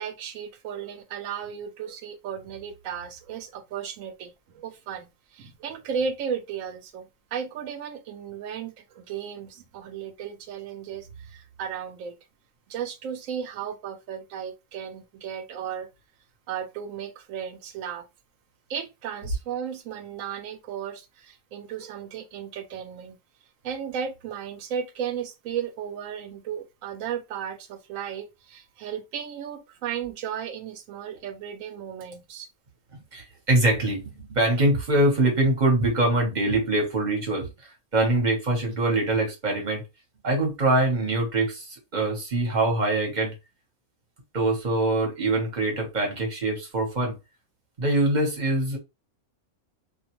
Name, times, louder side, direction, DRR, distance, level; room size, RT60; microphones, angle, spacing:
voice 1, 0.0-12.2 12.7-15.9 16.5-18.1 18.7-23.2 23.6-32.5, right 8 dB, 70° right, 0.9 m, -35 dB
voice 2, 33.1-37.5 37.9-39.8 40.2-43.3 44.3-47.2 47.8-48.8, right 2 dB, 35° right, 0.9 m, -23 dB
2.4 x 2.2 x 2.9 m
omnidirectional pair, 1.5 m